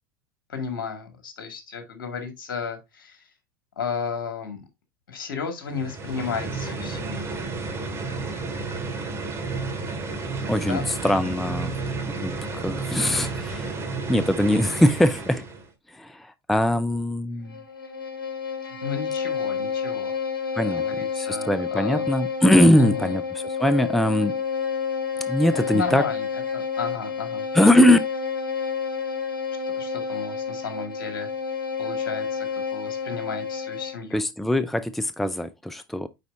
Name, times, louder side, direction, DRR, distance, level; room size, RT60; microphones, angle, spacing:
voice 1, 0.5-3.3 3.8-4.6 5.1-7.3 10.7-10.9 18.6-20.1 20.7-22.1 22.8-23.2 25.5-26.3 26.5-27.5 29.7-31.3 31.8-34.2, left 5 dB, 70° left, 1.9 m, -33 dB
sound 1, 5.7-15.7, right 3 dB, 20° right, 2.1 m, -31 dB
voice 2, 10.5-11.7 12.1-13.8 14.1-15.4 15.9-17.6 20.6-20.8 21.2-24.4 25.3-26.0 27.5-28.0 34.1-36.1, left 1 dB, ahead, 0.4 m, -21 dB
Bowed string instrument, 17.4-34.1, left 6 dB, 90° left, 1.1 m, -30 dB
9.1 x 4.1 x 2.5 m
hypercardioid pair, 85°, 11 cm